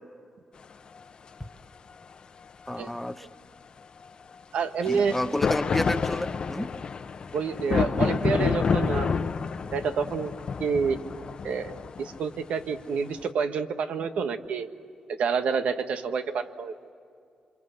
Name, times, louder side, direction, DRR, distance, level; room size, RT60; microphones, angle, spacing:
sound 1, 1.0-1.1 4.8-13.2, left 5 dB, 45° left, 0.8 m, -29 dB
voice 1, 2.7-3.3 4.9-6.7, left 1 dB, 5° left, 10 dB, 0.7 m, -30 dB
voice 2, 4.5-5.1 7.3-9.3 9.7-10.3 10.6-11.0 11.4-11.7 12.0-14.7 15.1-16.7, right 5 dB, 80° right, 8 dB, 1.4 m, -28 dB
27.5 x 26.0 x 7.9 m, 2.4 s
wide cardioid pair, 130°, 2 cm